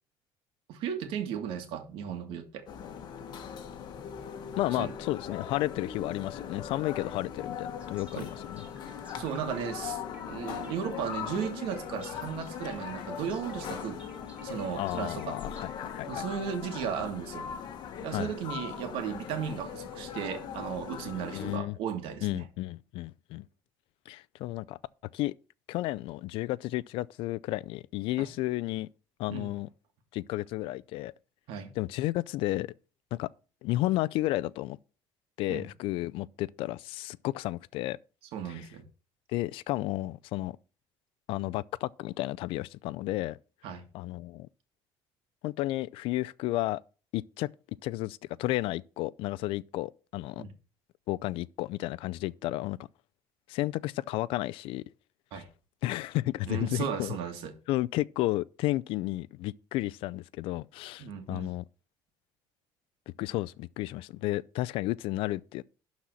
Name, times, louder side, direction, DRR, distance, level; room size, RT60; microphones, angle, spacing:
voice 1, 0.7-2.7 4.8-4.9 8.2-8.3 9.1-14.0 14.4-15.4 16.1-17.5 18.0-22.4 28.2-28.3 29.3-29.5 31.5-31.7 35.5-35.6 38.3-38.9 43.6-43.8 50.4-50.5 55.3-55.5 56.5-57.5 61.0-61.5, right 7 dB, 75° right, 2.1 m, -35 dB
sound 1, 2.7-21.6, left 8 dB, 50° left, 1.4 m, -40 dB
voice 2, 4.6-8.6 14.8-16.2 18.1-18.3 21.3-21.8 22.2-23.5 24.1-24.8 25.1-25.3 25.7-28.9 29.2-29.7 30.1-31.1 31.8-32.7 33.1-33.3 33.6-34.8 35.4-38.0 38.5-38.7 39.3-40.6 41.3-43.4 43.9-44.5 45.4-46.8 47.1-47.5 47.8-50.4 51.1-52.8 53.5-54.8 55.3-55.4 55.8-57.2 57.7-61.6 63.2-65.6, left 17 dB, 75° left, 0.4 m, -32 dB
sound 2, 7.8-15.6, right 1 dB, 15° right, 2.6 m, -54 dB
12.0 x 4.2 x 6.3 m
cardioid pair, 150°, 9 cm